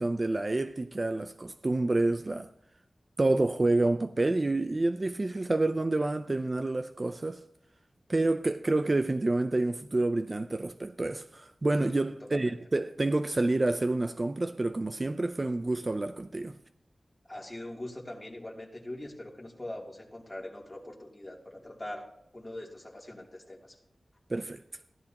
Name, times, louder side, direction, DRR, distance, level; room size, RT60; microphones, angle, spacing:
voice 1, 0.0-2.5 3.2-7.4 8.1-16.6 24.3-24.6, right 2 dB, 35° right, 0.4 m, -28 dB
voice 2, 12.1-12.5 17.3-22.1 22.3-23.8, left 1 dB, 20° left, 2.8 m, -42 dB
15.5 x 11.5 x 2.9 m
wide cardioid pair, 100°, 0 cm